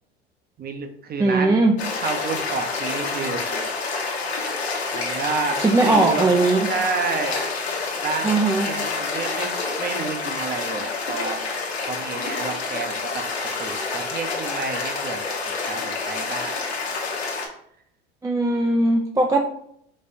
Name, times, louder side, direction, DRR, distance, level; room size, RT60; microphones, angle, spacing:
voice 1, 0.6-1.6 2.0-3.7 4.9-5.6 5.8-6.3 6.7-7.4 8.0-8.3 8.6-9.5 9.8-11.4 11.9-13.2 13.6-16.6, right 4 dB, 30° right, 7 dB, 0.8 m, -30 dB
voice 2, 1.2-1.8 5.5-6.7 8.2-8.7 18.2-19.4, right 2 dB, 10° right, 2 dB, 0.4 m, -19 dB
sound 1, 1.8-17.5, left 4 dB, 90° left, 1.0 m, -28 dB
5.4 x 3.3 x 2.7 m, 0.69 s
hypercardioid pair, 75°, 31 cm